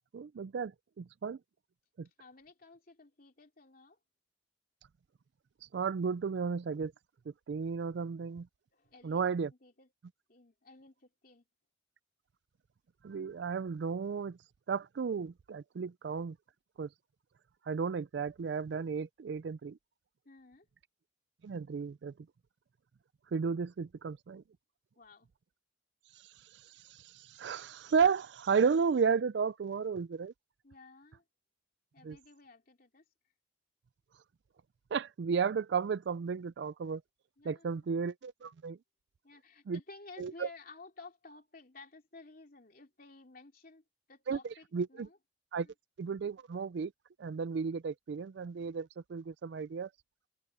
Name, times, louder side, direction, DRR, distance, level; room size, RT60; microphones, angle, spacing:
voice 1, 0.1-1.4 2.0-2.1 5.6-6.9 7.5-8.5 9.0-9.5 13.0-14.4 14.7-16.4 16.8-16.9 17.7-19.8 21.4-22.1 23.3-24.4 26.1-30.3 32.0-32.2 34.9-37.0 37.4-38.8 39.7-39.8 40.2-40.5 44.3-45.1 45.5-45.7 46.0-46.9 47.2-49.9, right 5 dB, 60° right, 0.4 m, -33 dB
voice 2, 2.0-4.0 8.7-9.2 9.5-9.9 10.3-11.5 20.2-20.7 25.0-25.3 30.6-31.2 31.9-33.0 37.4-37.9 39.2-45.2 45.6-45.7, left 3 dB, 50° left, 3.2 m, -54 dB
head